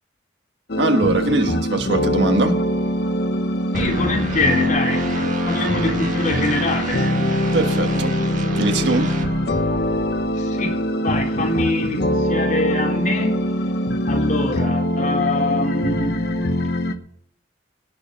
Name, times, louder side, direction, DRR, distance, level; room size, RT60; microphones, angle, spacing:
sound 1, 0.7-16.9, equal, 60° left, 1.1 m, -23 dB
voice 1, 0.8-2.6 7.5-8.1 8.5-9.1, right 2 dB, 70° right, 6 dB, 1.5 m, -21 dB
voice 2, 3.7-7.1 10.4-13.4 14.1-16.2, left 2 dB, 45° left, -1 dB, 3.9 m, -24 dB
sound 2, 3.7-10.2, right 2 dB, 45° right, 2.0 m, -30 dB
17.5 x 7.1 x 7.0 m, 0.67 s
head